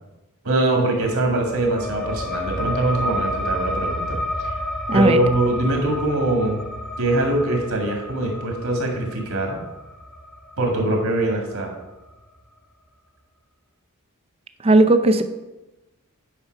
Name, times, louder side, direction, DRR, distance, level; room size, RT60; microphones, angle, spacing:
voice 1, 0.4-4.5 4.9-6.6 7.0-9.6 10.6-11.7, right 1 dB, 70° right, 1 dB, 2.0 m, -22 dB
sound 1, 1.0-12.1, left 1 dB, 5° left, 1.0 m, -31 dB
voice 2, 14.6-15.2, right 2 dB, 25° right, 10 dB, 0.5 m, -15 dB
8.9 x 5.7 x 4.6 m, 1.0 s
head